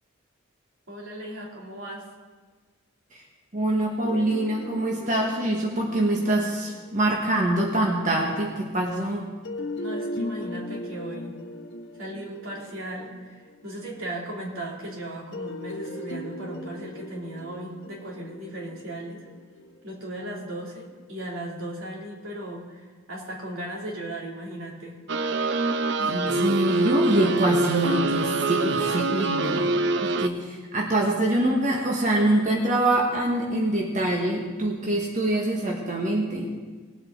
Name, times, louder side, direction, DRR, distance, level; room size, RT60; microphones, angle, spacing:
voice 1, 0.9-2.1 9.7-11.4 12.0-19.2 19.8-25.0, right 1 dB, 80° right, -3 dB, 2.9 m, -37 dB
voice 2, 3.5-9.3 26.0-36.5, right 1 dB, 40° right, -2 dB, 1.4 m, -25 dB
sound 1, 4.0-7.9 9.4-13.9 15.3-20.5, left 1 dB, 60° left, 0.9 m, -38 dB
sound 2, 25.1-30.3, right 3 dB, 55° right, 0.5 m, -25 dB
20.5 x 8.1 x 3.9 m, 1.4 s
head